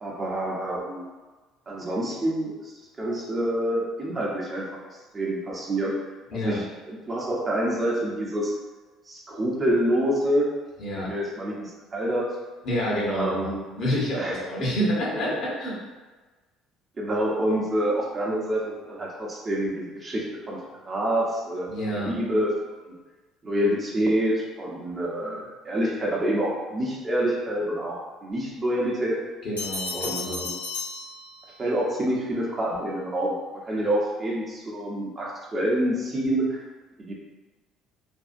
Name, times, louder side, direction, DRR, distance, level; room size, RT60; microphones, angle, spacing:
voice 1, 0.0-1.0 1.7-4.6 5.1-5.9 6.3-8.5 9.1-10.5 11.0-12.3 13.1-13.6 14.2-14.4 17.0-22.5 23.4-29.2 29.9-30.6 31.6-36.6 37.0-37.1, right 1 dB, 30° right, -4 dB, 0.8 m, -27 dB
voice 2, 10.8-11.1 12.6-15.7 21.7-22.1 29.4-30.4, equal, 55° left, -5 dB, 1.0 m, -28 dB
Bell, 29.6-31.8, left 3 dB, 90° left, 0.6 m, -34 dB
2.7 x 2.3 x 2.5 m, 1.3 s
hypercardioid pair, 60°, 0 cm